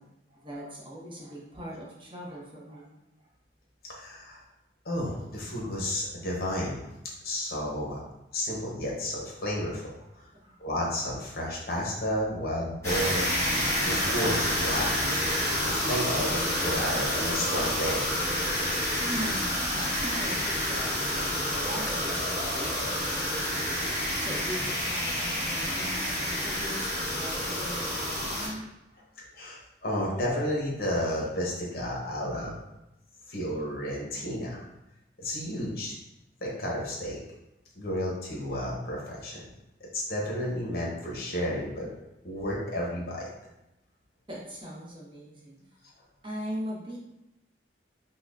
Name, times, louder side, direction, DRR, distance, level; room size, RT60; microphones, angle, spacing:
voice 1, 0.0-2.9 10.0-10.1 10.4-10.6 19.0-23.7 24.2-29.0 29.3-29.4 35.5-35.6 44.3-45.6 46.2-47.0, equal, 30° right, -4 dB, 0.8 m, -40 dB
voice 2, 3.9-4.4 4.8-6.8 7.2-8.0 8.3-9.9 10.6-13.5 13.8-15.1 15.6-18.0 29.4-32.5 33.3-34.6 35.2-35.9 36.4-37.2 37.7-39.4 39.9-41.9 42.2-43.2, equal, 55° left, -4 dB, 0.9 m, -32 dB
sound 1, 12.8-28.5, equal, 15° left, 1.2 m, -29 dB
5.4 x 2.2 x 2.5 m, 0.93 s
head